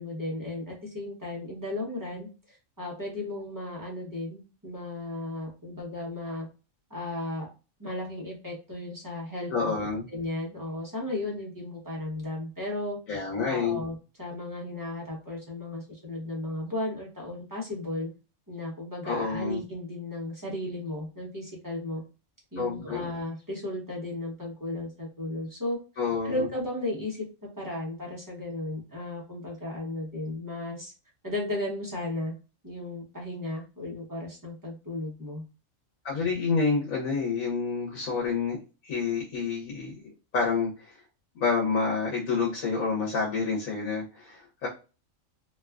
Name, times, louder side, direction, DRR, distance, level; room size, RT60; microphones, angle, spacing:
voice 1, 0.0-6.5 6.9-7.5 7.8-9.5 10.1-13.0 13.5-18.1 18.5-22.0 22.5-25.8 26.2-30.9 31.2-32.3 32.6-35.4, left 2 dB, 20° right, -4 dB, 0.8 m, -35 dB
voice 2, 9.5-10.1 13.1-13.8 19.0-19.6 22.6-23.0 26.0-26.5 36.0-38.6 38.8-40.0 40.3-41.0 41.3-44.7, left 4 dB, 80° left, -3 dB, 1.2 m, -28 dB
2.8 x 2.3 x 2.3 m, 0.31 s
omnidirectional pair, 1.4 m